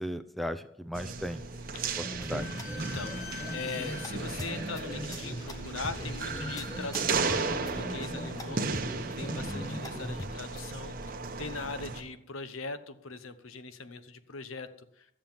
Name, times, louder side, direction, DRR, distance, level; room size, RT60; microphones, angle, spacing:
voice 1, 0.0-1.4 2.0-2.5 9.5-9.8, equal, ahead, 10 dB, 0.4 m, -36 dB
sound 1, 0.9-12.0, right 4 dB, 45° right, 1.0 m, -35 dB
Slam / Squeak, 2.0-9.3, left 2 dB, 40° left, 5.1 m, -45 dB
sound 2, 2.0-10.6, equal, 20° left, 0.9 m, -41 dB
voice 2, 2.8-15.1, left 4 dB, 90° left, 11 dB, 0.9 m, -41 dB
12.5 x 7.6 x 7.2 m, 0.77 s
head